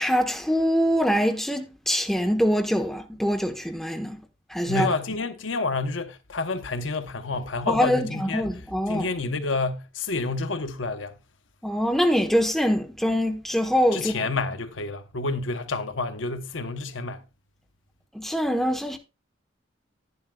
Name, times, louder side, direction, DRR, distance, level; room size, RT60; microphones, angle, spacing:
voice 1, 0.0-4.2 4.5-4.9 7.7-9.1 11.6-14.1 18.1-19.0, equal, ahead, 1.1 m, -24 dB
voice 2, 4.7-8.6 8.9-11.2 13.9-17.2, left 3 dB, 85° left, 1.0 m, -29 dB
11.0 x 10.5 x 2.3 m
head